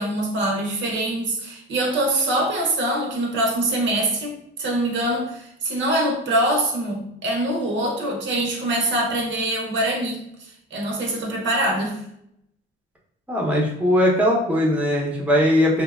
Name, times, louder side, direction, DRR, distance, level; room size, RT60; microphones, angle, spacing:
voice 1, 0.0-12.0, right 1 dB, 70° right, 0 dB, 0.7 m, -24 dB
voice 2, 13.3-15.8, equal, 5° right, -2 dB, 0.7 m, -19 dB
2.7 x 2.1 x 2.3 m, 0.76 s
cardioid pair, 90°, 20 cm